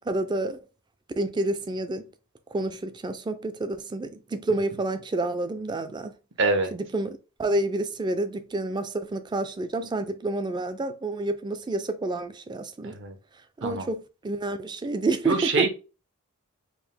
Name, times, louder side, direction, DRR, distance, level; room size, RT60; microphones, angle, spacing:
voice 1, 0.1-0.6 1.2-2.1 2.5-6.1 6.7-13.0 13.6-15.7, right 2 dB, 20° right, 0.3 m, -29 dB
voice 2, 6.4-6.7 12.8-13.2 13.6-13.9 15.2-15.7, right 3 dB, 55° right, 0.7 m, -25 dB
4.7 x 2.0 x 3.5 m
head